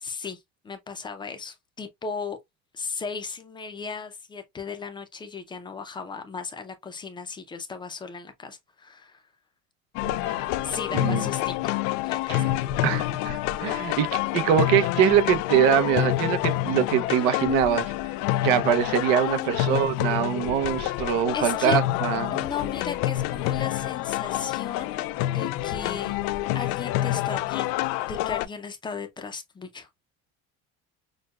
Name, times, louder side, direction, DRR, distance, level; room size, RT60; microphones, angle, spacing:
voice 1, 0.0-2.4 2.7-9.2 10.6-11.5 12.0-12.5 19.2-20.0 21.3-21.8 22.3-24.9 25.3-26.1 26.5-29.9, left 5 dB, 15° left, 0.5 m, -36 dB
sound 1, 10.0-28.5, left 15 dB, 75° left, 0.4 m, -27 dB
voice 2, 10.9-11.2 12.3-12.4 12.8-17.9 18.4-22.4, right 9 dB, 90° right, 0.7 m, -23 dB
6.2 x 2.2 x 2.3 m
cardioid pair, 175°, 30 cm